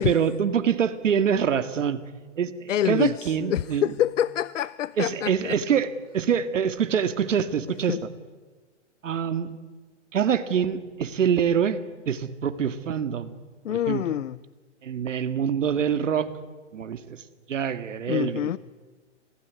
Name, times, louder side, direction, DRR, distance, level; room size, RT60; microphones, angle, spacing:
voice 1, 0.0-2.0 2.4-3.9 5.0-8.0 9.0-9.5 10.1-11.8 12.1-13.3 13.7-14.0 14.8-16.3 16.7-18.5, right 8 dB, 80° right, 2.2 m, -25 dB
voice 2, 2.7-5.5 7.9-8.0 13.6-14.4 18.1-18.6, left 11 dB, 80° left, 0.7 m, -26 dB
26.5 x 17.0 x 9.7 m
hypercardioid pair, 155°, 37 cm